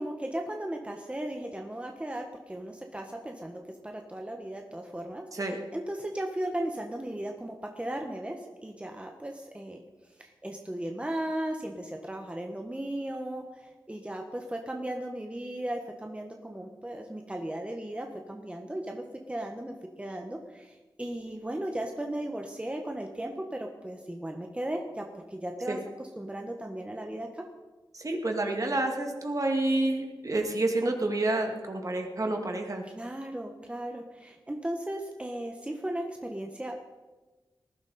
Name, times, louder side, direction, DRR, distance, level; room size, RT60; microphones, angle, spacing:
voice 1, 0.0-9.8 10.2-27.4 32.8-36.8, right 1 dB, 15° right, 3 dB, 1.4 m, -36 dB
voice 2, 27.9-32.8, right 2 dB, 45° right, 3 dB, 2.3 m, -29 dB
19.5 x 11.5 x 4.3 m, 1.2 s
wide cardioid pair, 70°, 8 cm